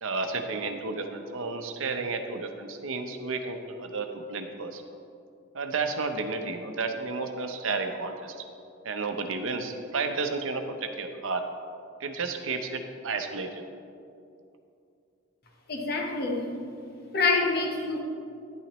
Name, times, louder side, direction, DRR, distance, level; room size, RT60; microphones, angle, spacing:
voice 1, 0.0-4.8 5.5-8.4 8.8-11.4 12.0-13.6, right 4 dB, 75° right, 6 dB, 0.8 m, -32 dB
voice 2, 15.7-16.6 17.1-18.0, left 3 dB, 50° left, 1 dB, 1.1 m, -26 dB
10.5 x 8.8 x 3.1 m, 2.6 s
head